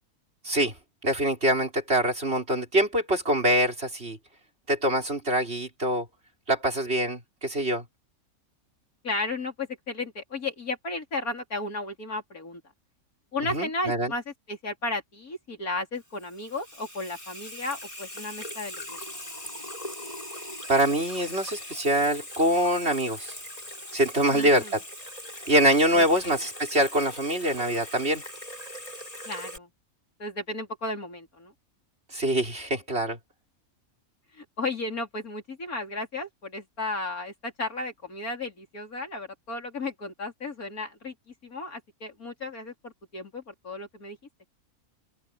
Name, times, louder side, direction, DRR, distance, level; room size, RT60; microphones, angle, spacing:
voice 1, 1.0-4.2 4.7-6.0 6.5-7.8 13.5-14.1 20.7-23.3 23.9-24.8 25.5-28.2 32.1-33.2, right 1 dB, 45° right, 4.9 m, -24 dB
voice 2, 9.0-12.6 13.3-19.0 24.3-24.8 25.9-26.4 29.3-29.7 30.2-31.5 34.4-41.1 41.4-44.2, left 2 dB, 75° left, 4.7 m, -34 dB
Water tap faucet / Sink (filling or washing), 16.0-29.6, left 1 dB, 25° left, 6.5 m, -41 dB
open air
omnidirectional pair, 1.5 m